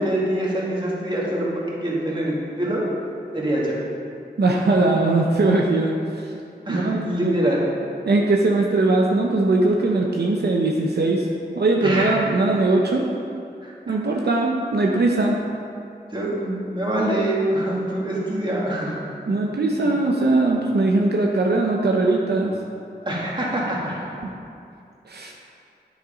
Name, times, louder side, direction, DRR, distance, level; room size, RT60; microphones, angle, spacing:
voice 1, 0.0-2.8 3.3-3.8 6.7-7.7 11.8-12.2 13.6-14.0 15.2-15.3 16.1-19.0 19.7-19.9 23.0-24.1, right 1 dB, 30° right, -5 dB, 2.1 m, -25 dB
voice 2, 4.4-5.9 6.7-7.3 8.1-11.3 11.6-13.1 13.9-15.4 19.3-22.5 24.2-24.3 25.1-25.3, right 2 dB, 75° right, -1 dB, 0.8 m, -20 dB
9.6 x 6.5 x 5.1 m, 2.5 s
wide cardioid pair, 85°, 17 cm